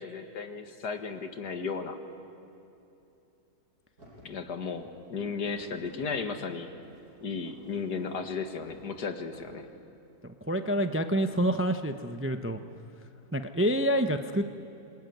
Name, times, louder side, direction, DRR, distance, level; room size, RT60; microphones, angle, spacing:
voice 1, 0.0-2.0 4.2-6.7 7.2-9.7, left 5 dB, 80° left, 6 dB, 2.1 m, -35 dB
sound 1, 4.0-4.4 4.7-6.1 6.8-8.3 8.6-9.5, equal, 70° right, 7.5 m, -55 dB
voice 2, 10.2-12.6 13.3-14.5, equal, 15° right, 7 dB, 0.4 m, -27 dB
26.5 x 21.5 x 9.3 m, 2.9 s
omnidirectional pair, 1.7 m